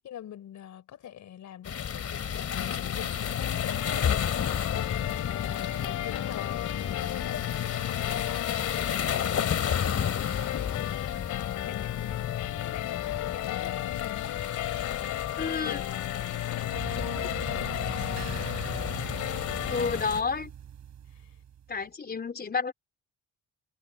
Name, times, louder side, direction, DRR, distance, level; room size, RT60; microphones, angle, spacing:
voice 1, 0.0-4.5 5.3-11.4 11.6-15.8 16.1-18.3 19.2-20.3 21.1-21.4, left 10 dB, 70° left, 4.2 m, -45 dB
sound 1, 1.6-20.2, left 8 dB, 55° left, 2.5 m, -33 dB
sound 2, 2.6-20.0, left 15 dB, 90° left, 3.4 m, -34 dB
voice 2, 15.4-15.8 19.7-20.5 21.7-22.7, left 5 dB, 30° left, 3.7 m, -30 dB
sound 3, 16.7-21.8, right 9 dB, 65° right, 6.9 m, -41 dB
cardioid pair, 90°, 30 cm